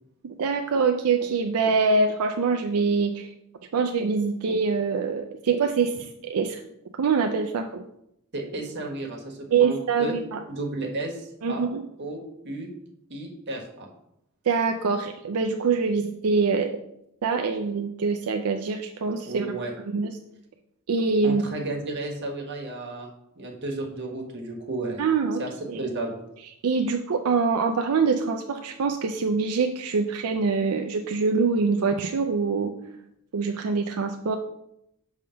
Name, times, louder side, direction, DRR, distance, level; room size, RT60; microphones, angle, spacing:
voice 1, 0.2-3.3 3.7-6.6 7.0-7.8 9.5-10.4 11.4-11.8 14.5-16.8 17.2-19.5 19.9-20.1 20.9-21.4 25.0-25.4 25.7-25.8 26.6-32.7 33.3-34.4, right 4 dB, 85° right, 4 dB, 0.5 m, -24 dB
voice 2, 8.3-10.1 10.5-11.7 12.0-12.7 13.1-13.9 19.2-19.7 21.2-25.0 25.4-26.2, right 2 dB, 55° right, 0 dB, 1.4 m, -33 dB
6.4 x 3.5 x 5.6 m, 0.79 s
head